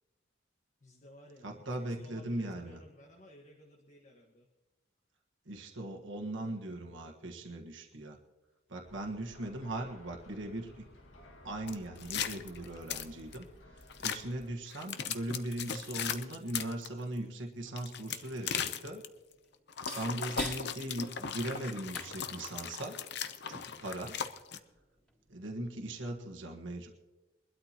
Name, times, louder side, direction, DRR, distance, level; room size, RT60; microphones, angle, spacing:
voice 1, 0.8-4.5 6.4-6.6 19.8-20.3 23.5-23.8, equal, 40° left, -2 dB, 1.5 m, -57 dB
voice 2, 1.4-2.8 5.4-8.2 8.7-10.8 11.4-13.4 13.7-19.0 19.9-23.0 23.5-24.2 25.3-26.9, right 1 dB, 70° right, 2 dB, 1.5 m, -39 dB
sound 1, 8.8-14.5, left 1 dB, 75° left, 1.9 m, -56 dB
sound 2, 11.7-13.4 13.9-14.2 14.7-16.9 17.7-19.1 19.7-24.6, left 7 dB, 55° left, 0.8 m, -38 dB
sound 3, 19.1-25.3, equal, 5° left, 3.6 m, -49 dB
23.0 x 12.5 x 2.9 m, 1.1 s
head